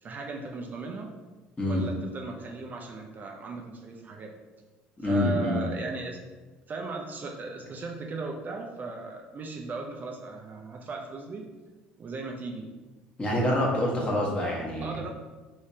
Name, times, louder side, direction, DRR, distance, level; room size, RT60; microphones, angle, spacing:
voice 1, 0.0-1.1 1.6-4.3 5.0-6.2 6.7-11.4 12.0-12.7 14.8-15.1, right 3 dB, 35° right, 1 dB, 0.5 m, -37 dB
voice 2, 5.0-5.7 13.2-15.0, left 1 dB, 25° left, -3 dB, 1.1 m, -26 dB
3.3 x 3.1 x 2.7 m, 1.2 s
hypercardioid pair, 65°, 5 cm